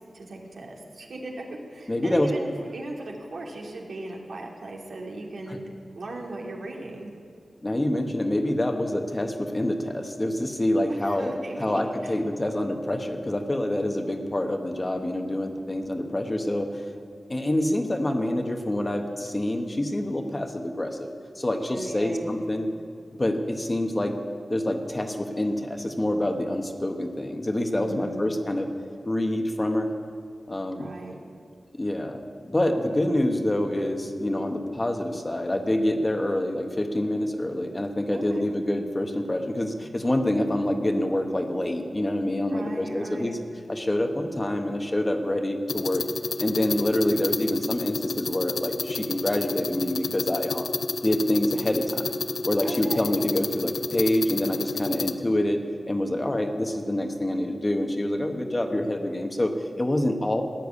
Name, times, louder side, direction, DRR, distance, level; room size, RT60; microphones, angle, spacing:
voice 1, 0.1-1.3 1.7-5.6 6.0-7.1 10.9-12.1 21.7-22.3 27.7-28.2 30.8-31.2 38.1-38.5 42.5-43.4 52.6-53.0, right 2 dB, 75° right, -1 dB, 2.5 m, -38 dB
voice 2, 1.9-2.3 5.5-5.6 7.6-11.3 11.6-16.9 17.3-21.1 21.4-22.7 23.2-24.2 24.5-28.7 29.1-29.9 30.5-30.9 31.7-43.4 43.7-46.0 46.4-50.7 51.0-52.1 52.4-55.6 55.9-60.4, left 1 dB, 25° left, 4 dB, 1.2 m, -26 dB
sound 1, 45.7-55.1, left 4 dB, 85° left, 0.6 m, -31 dB
15.5 x 10.5 x 8.4 m, 2.3 s
wide cardioid pair, 100°, 0 cm